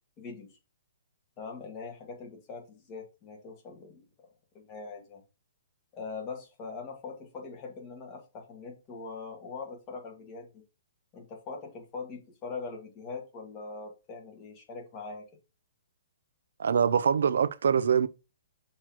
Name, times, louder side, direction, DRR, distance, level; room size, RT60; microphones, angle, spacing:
voice 1, 0.2-0.5 1.4-4.0 4.5-5.2 5.9-10.6 11.1-15.2, left 4 dB, 25° left, 1.7 m, -42 dB
voice 2, 16.6-18.1, right 7 dB, 75° right, 0.5 m, -24 dB
6.3 x 3.2 x 5.9 m
hypercardioid pair, 160°, 0 cm